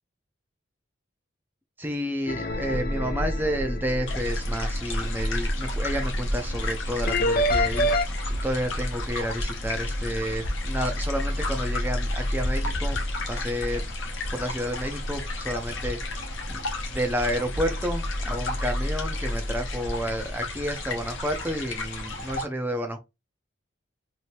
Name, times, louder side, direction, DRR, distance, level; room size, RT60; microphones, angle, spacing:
voice 1, 1.8-8.1 8.4-13.0 13.3-13.8 14.3-16.6 16.9-23.0, equal, 10° right, 0.5 m, -30 dB
sound 1, 2.3-4.4 7.1-8.0, left 1 dB, 45° left, 0.4 m, -27 dB
sound 2, 2.5-20.9, equal, 40° right, 0.9 m, -32 dB
sound 3, 4.1-22.5, left 2 dB, 65° left, 0.9 m, -34 dB
2.8 x 2.7 x 3.0 m
head